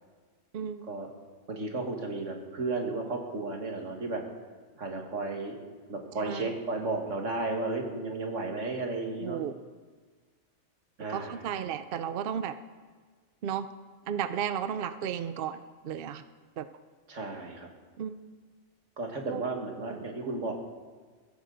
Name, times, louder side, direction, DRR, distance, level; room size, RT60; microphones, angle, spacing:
voice 1, 0.5-0.8 6.2-6.5 9.2-9.6 11.1-12.6 13.4-13.7 14.1-15.6 15.8-16.2 16.6-16.7 18.0-18.2 19.3-19.4 19.9-20.0, right 8 dB, 60° right, 11 dB, 0.7 m, -33 dB
voice 2, 1.5-4.2 4.8-5.6 5.9-9.4 11.0-11.4 17.1-17.7 19.0-20.5, right 3 dB, 85° right, 2 dB, 2.2 m, -33 dB
22.0 x 15.5 x 4.0 m, 1.5 s
omnidirectional pair, 1.2 m